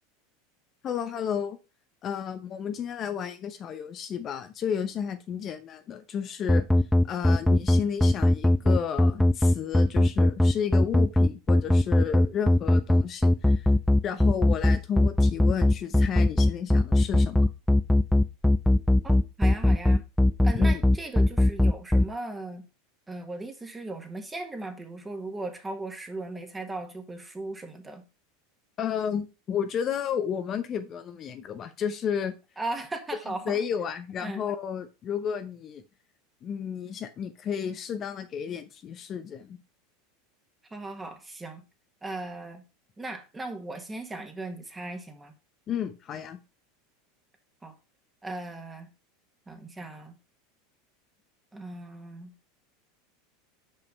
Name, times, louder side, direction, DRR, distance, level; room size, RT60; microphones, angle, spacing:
voice 1, 0.8-1.6 2.0-6.7 7.0-13.7 14.0-17.4 20.5-20.8 28.8-32.3 33.5-35.8 36.4-39.6 45.7-46.4, left 8 dB, 35° left, 0.8 m, -32 dB
sound 1, 6.5-22.0, left 1 dB, ahead, 0.4 m, -19 dB
voice 2, 19.0-20.0 20.4-22.6 23.1-28.0 32.6-33.6 34.2-34.4 40.7-41.6 42.0-42.6 43.0-45.3 47.6-47.7 48.2-48.9 49.5-50.2 51.5-52.3, right 2 dB, 15° right, 1.6 m, -37 dB
5.7 x 5.1 x 5.2 m
hypercardioid pair, 105°, 0 cm